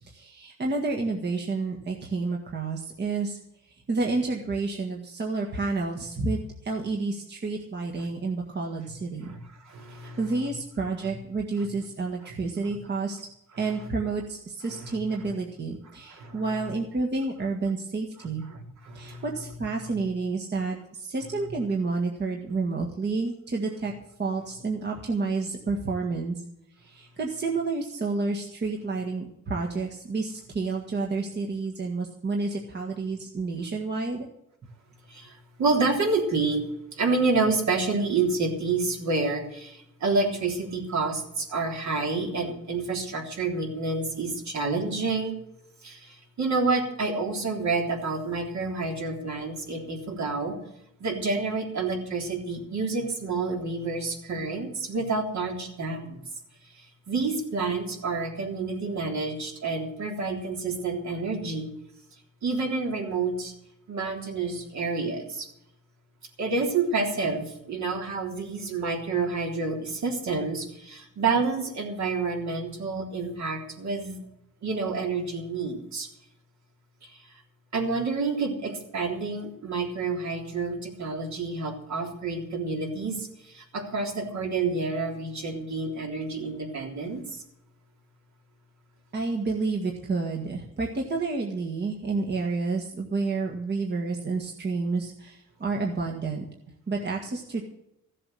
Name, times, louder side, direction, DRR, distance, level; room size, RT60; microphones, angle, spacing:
voice 1, 0.0-9.3 10.0-13.2 13.6-18.4 18.9-23.9 24.2-26.4 26.8-34.3 89.1-96.4 96.9-97.6, right 3 dB, 35° right, 0 dB, 1.7 m, -30 dB
voice 2, 9.7-10.2 14.7-15.0 16.1-16.4 18.5-19.2 19.8-20.0 35.1-36.6 36.9-45.3 45.8-50.6 51.0-56.2 56.7-61.7 62.4-63.5 63.9-65.5 66.4-74.2 74.6-76.1 77.0-77.4 77.7-87.4, right 3 dB, 60° right, 1 dB, 3.5 m, -29 dB
15.5 x 7.6 x 7.8 m, 0.80 s
wide cardioid pair, 160°, 32 cm